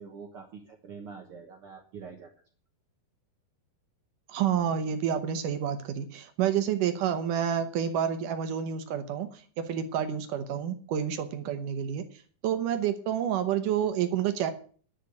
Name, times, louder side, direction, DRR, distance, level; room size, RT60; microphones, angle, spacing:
voice 1, 0.0-2.3, right 5 dB, 90° right, 3 dB, 1.2 m, -45 dB
voice 2, 4.3-12.0 12.4-14.5, right 9 dB, 70° right, 8 dB, 2.1 m, -29 dB
11.0 x 6.7 x 8.1 m, 0.43 s
omnidirectional pair, 4.8 m